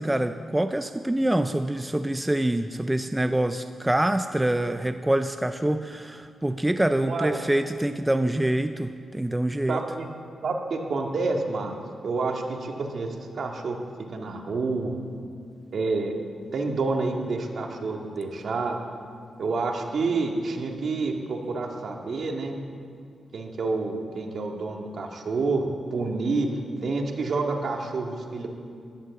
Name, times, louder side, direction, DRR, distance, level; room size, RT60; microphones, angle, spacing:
voice 1, 0.0-9.8, right 1 dB, 10° right, 8 dB, 0.4 m, -25 dB
voice 2, 7.0-7.4 9.7-10.1 10.4-11.7 12.0-13.8 14.1-15.0 15.7-16.1 16.5-18.8 19.4-22.6 23.3-28.5, right 3 dB, 55° right, 1 dB, 2.0 m, -28 dB
16.5 x 11.5 x 7.2 m, 2.3 s
wide cardioid pair, 140°, 0 cm